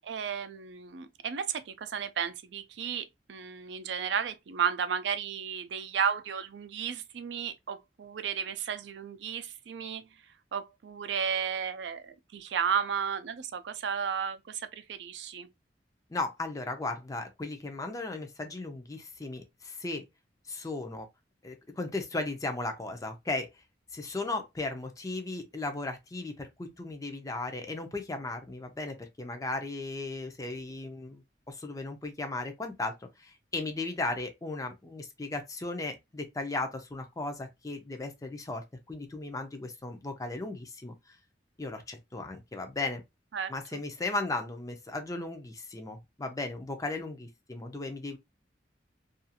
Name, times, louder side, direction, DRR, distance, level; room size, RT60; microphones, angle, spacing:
voice 1, 0.0-10.1 10.5-15.5 43.3-43.8, right 7 dB, 75° right, 0.4 m, -33 dB
voice 2, 16.1-20.0 20.4-21.1 21.4-23.5 23.9-41.2 41.6-43.0 43.5-48.2, left 2 dB, 20° left, 0.5 m, -36 dB
2.4 x 2.3 x 2.7 m
head